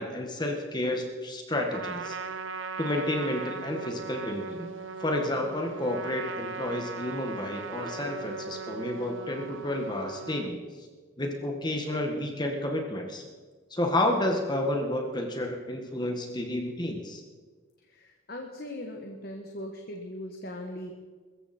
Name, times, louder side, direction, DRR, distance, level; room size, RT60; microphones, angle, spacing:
voice 1, 0.0-2.2 2.8-4.7 5.0-10.6 11.2-13.2 13.7-17.2, left 1 dB, 20° left, 2 dB, 1.7 m, -30 dB
Trumpet, 1.7-10.5, right 5 dB, 70° right, 1.0 m, -38 dB
voice 2, 17.9-20.9, left 1 dB, 50° left, 2 dB, 1.6 m, -39 dB
22.5 x 14.5 x 4.4 m, 1.4 s
head